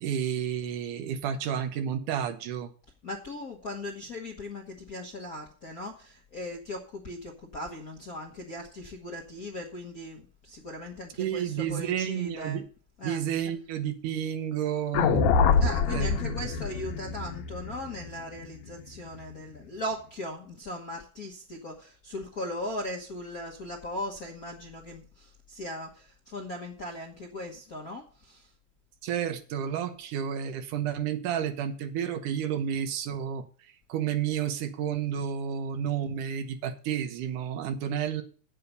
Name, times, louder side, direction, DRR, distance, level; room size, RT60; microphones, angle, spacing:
voice 1, 0.0-2.7 11.2-12.6 13.0-15.3 15.9-16.4 29.0-33.5 33.9-38.2, right 9 dB, 80° right, 9 dB, 2.6 m, -31 dB
voice 2, 3.0-12.6 13.0-13.2 15.6-28.5, left 1 dB, 50° left, 0 dB, 1.1 m, -38 dB
sound 1, 14.9-19.2, left 5 dB, 70° left, 2.2 m, -26 dB
8.5 x 7.6 x 6.7 m, 0.41 s
omnidirectional pair, 3.6 m